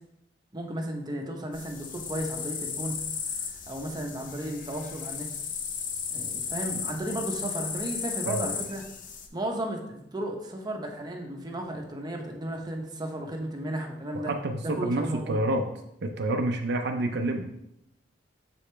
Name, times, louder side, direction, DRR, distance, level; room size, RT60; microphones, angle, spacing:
voice 1, 0.5-3.0 3.3-5.3 6.1-8.8 9.3-14.3 14.6-15.4, right 1 dB, 25° right, 1 dB, 0.9 m, -34 dB
sound 1, 1.5-9.3, left 6 dB, 45° left, 0.7 m, -35 dB
voice 2, 8.3-8.6 14.1-15.6 16.0-17.5, right 1 dB, 65° right, 4 dB, 0.6 m, -28 dB
6.9 x 5.0 x 3.3 m, 0.80 s
head